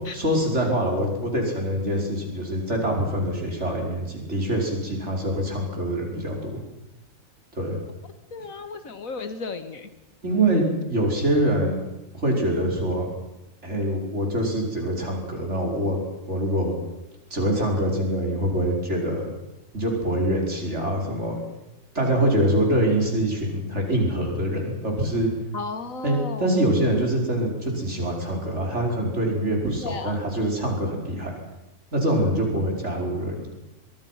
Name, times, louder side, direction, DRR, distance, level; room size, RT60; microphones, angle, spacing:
voice 1, 0.1-6.6 7.5-7.8 10.2-11.8 12.1-13.1 13.6-16.0 16.3-16.7 17.3-19.3 19.7-21.4 21.9-25.3 26.0-31.3 31.9-33.5, right 1 dB, 60° right, 0 dB, 5.5 m, -24 dB
voice 2, 8.3-9.9 25.5-26.6 29.8-30.1, left 4 dB, 90° left, 9 dB, 2.2 m, -34 dB
23.5 x 22.5 x 5.9 m, 0.93 s
omnidirectional pair, 1.4 m